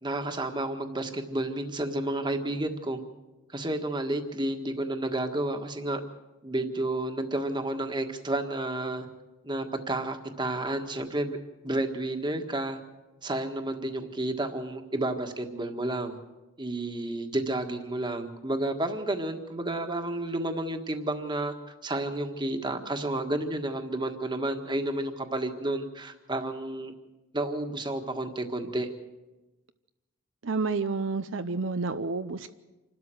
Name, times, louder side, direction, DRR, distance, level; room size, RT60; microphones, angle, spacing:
voice 1, 0.0-3.0 3.5-6.0 6.4-9.1 9.4-11.4 11.6-12.8 13.2-16.2 16.6-21.5 21.8-26.9 27.3-28.9, right 1 dB, 25° right, 1.6 m, -31 dB
voice 2, 30.4-32.5, right 4 dB, 70° right, 0.7 m, -30 dB
27.0 x 12.5 x 7.7 m
head